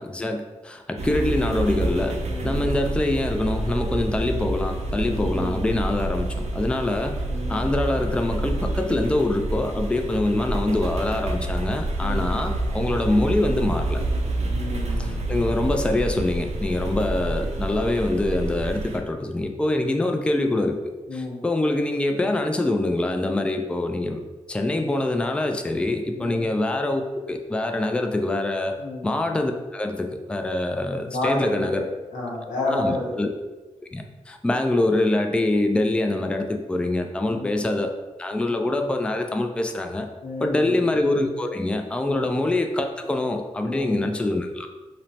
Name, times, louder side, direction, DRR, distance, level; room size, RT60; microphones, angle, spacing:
voice 1, 0.0-2.2 2.4-6.3 6.5-7.2 7.5-14.0 15.0-20.8 21.1-24.2 24.5-28.8 29.0-31.8 32.7-33.3 33.9-40.1 40.4-44.7, left 2 dB, 10° left, 5 dB, 0.3 m, -24 dB
sound 1, 1.0-19.0, right 1 dB, 60° right, 0.5 m, -28 dB
voice 2, 2.3-2.7 5.1-5.6 7.3-7.7 9.9-10.1 12.0-12.4 14.4-15.4 19.7-19.9 21.1-21.4 26.1-26.4 28.8-29.1 31.1-31.8 32.1-33.2 37.3-37.6 40.2-40.8 42.0-42.2 43.6-44.2, left 2 dB, 85° left, -5 dB, 0.9 m, -31 dB
3.0 x 2.0 x 2.7 m, 1.2 s
supercardioid pair, 45°, 13 cm